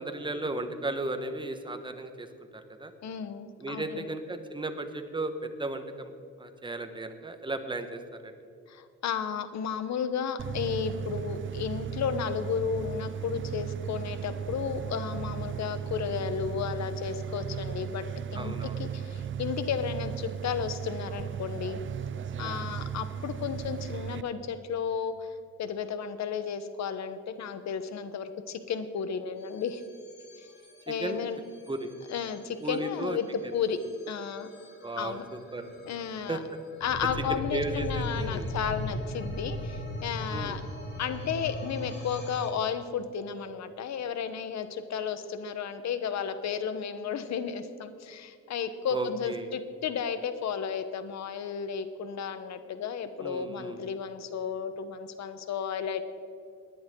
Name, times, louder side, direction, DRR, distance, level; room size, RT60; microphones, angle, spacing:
voice 1, 0.0-2.3 2.5-2.9 3.6-6.1 6.4-8.3 18.3-18.8 22.4-22.7 30.9-31.2 31.7-31.9 32.6-33.2 33.4-33.5 34.8-35.7 36.3-36.4 37.3-38.5 40.3-40.6 48.9-49.5 53.2-53.8, right 2 dB, 15° right, 7 dB, 1.3 m, -35 dB
voice 2, 3.0-4.1 8.7-18.0 18.3-21.8 22.4-25.1 25.6-29.8 30.4-30.5 30.9-31.4 32.1-33.8 34.1-34.5 35.0-35.2 35.9-36.4 36.8-40.6 41.0-56.0, left 7 dB, 65° left, 11 dB, 1.1 m, -33 dB
sound 1, 10.4-24.2, right 7 dB, 40° right, 0.6 m, -36 dB
sound 2, 29.4-42.5, left 1 dB, 35° left, 3.9 m, -39 dB
19.0 x 10.5 x 3.8 m, 2.4 s
cardioid pair, 90°, 30 cm